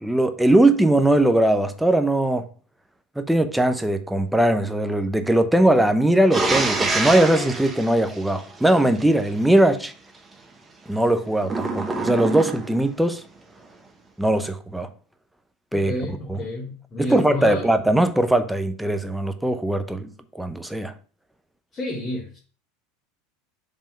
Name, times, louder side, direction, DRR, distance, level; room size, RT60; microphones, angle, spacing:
voice 1, 0.0-2.5 3.2-9.9 10.9-13.2 14.2-14.9 15.7-15.9 16.3-16.4 17.0-20.9, right 1 dB, 5° right, 0.7 m, -20 dB
sound 1, 6.3-9.0 11.4-12.9, right 3 dB, 20° right, 1.1 m, -26 dB
voice 2, 15.7-17.6 21.7-22.4, left 1 dB, 30° left, 1.4 m, -30 dB
5.3 x 3.5 x 5.1 m
hypercardioid pair, 100°, 0 cm